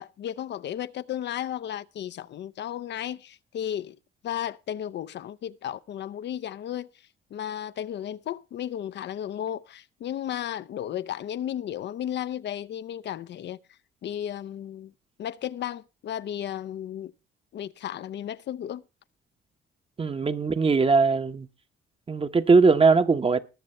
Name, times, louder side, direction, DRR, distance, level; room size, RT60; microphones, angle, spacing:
voice 1, 0.0-4.0 4.2-6.9 7.3-13.6 14.0-14.9 15.2-17.1 17.5-18.8, left 10 dB, 60° left, 0.5 m, -34 dB
voice 2, 20.0-21.5 22.1-23.4, right 4 dB, 30° right, 0.9 m, -20 dB
20.0 x 6.7 x 4.3 m
cardioid pair, 90°, 20 cm